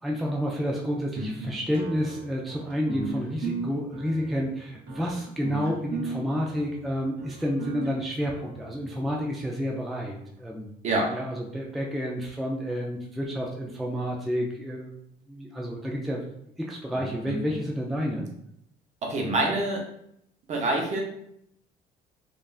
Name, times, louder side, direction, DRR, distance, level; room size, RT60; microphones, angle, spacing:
voice 1, 0.0-10.7 11.1-15.0 15.3-16.2 16.6-18.3, equal, ahead, -2 dB, 0.3 m, -30 dB
sound 1, 1.7-9.1, right 4 dB, 90° right, 0.9 m, -37 dB
voice 2, 17.0-17.3 19.0-19.8 20.5-21.0, right 2 dB, 45° right, 0 dB, 0.8 m, -26 dB
3.2 x 2.4 x 2.3 m, 0.74 s
cardioid pair, 110°, 17 cm